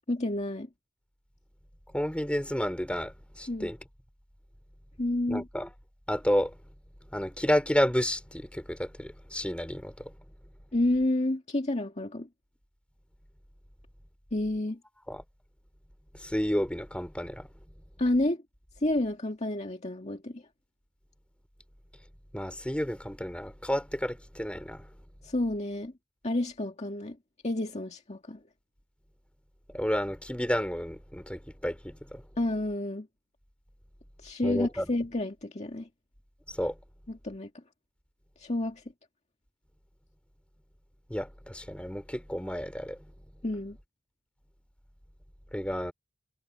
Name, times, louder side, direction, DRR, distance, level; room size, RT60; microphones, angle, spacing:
voice 1, 0.1-0.7 3.5-3.7 5.0-5.5 10.7-12.3 14.3-14.8 18.0-18.4 18.8-20.4 25.2-25.9 26.2-27.2 27.4-28.4 32.4-33.1 34.2-35.9 37.1-37.5 38.4-38.8 43.4-43.8, left 1 dB, 35° left, 2.0 m, -30 dB
voice 2, 1.9-3.8 5.3-5.7 6.1-6.5 7.1-10.1 15.1-15.2 16.2-17.5 22.3-24.8 29.7-32.2 34.4-34.9 36.6-36.7 41.1-43.0 45.5-45.9, equal, 5° left, 3.8 m, -31 dB
head